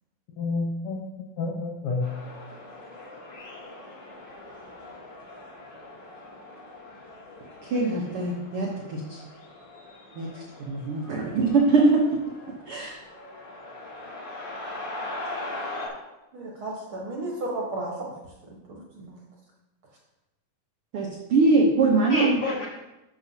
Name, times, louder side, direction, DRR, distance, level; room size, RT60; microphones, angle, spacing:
voice 1, 0.4-1.1 1.4-2.1 22.1-22.7, left 3 dB, 75° left, -1 dB, 1.2 m, -28 dB
sound 1, 2.0-15.9, left 2 dB, 40° left, 2.2 m, -41 dB
voice 2, 7.6-9.2 10.2-11.9 12.7-13.0 20.9-22.4, right 3 dB, 75° right, -1 dB, 1.3 m, -23 dB
voice 3, 16.3-18.1 18.5-19.2, right 2 dB, 55° right, -2 dB, 1.6 m, -34 dB
12.5 x 6.3 x 2.8 m, 1.0 s
omnidirectional pair, 3.8 m